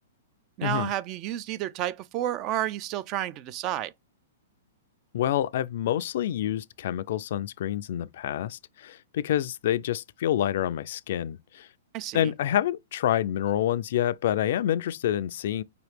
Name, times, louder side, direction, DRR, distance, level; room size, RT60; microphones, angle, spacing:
voice 1, 0.6-3.9 11.9-12.3, right 13 dB, 35° right, 0.3 m, -31 dB
voice 2, 5.1-11.7 12.1-15.6, left 11 dB, 60° left, 0.3 m, -27 dB
4.8 x 3.0 x 3.1 m
hypercardioid pair, 135°, 0 cm